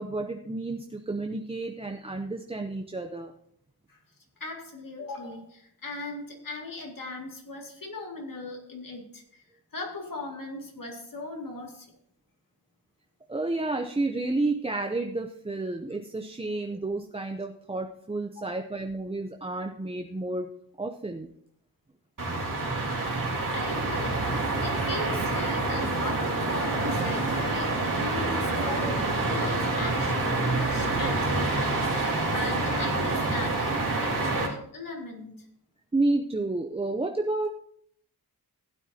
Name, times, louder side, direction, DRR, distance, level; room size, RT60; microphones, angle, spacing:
voice 1, 0.0-3.3 13.3-20.5 20.8-21.3 35.9-37.5, right 2 dB, 15° right, 4 dB, 0.5 m, -30 dB
voice 2, 4.4-9.4 9.7-11.9 18.5-18.6 23.5-24.2 24.6-35.5, left 2 dB, 55° left, 0 dB, 2.3 m, -39 dB
sound 1, 22.2-34.5, right 2 dB, 55° right, 2.7 m, -27 dB
15.5 x 9.2 x 2.8 m, 0.68 s
wide cardioid pair, 135°, 39 cm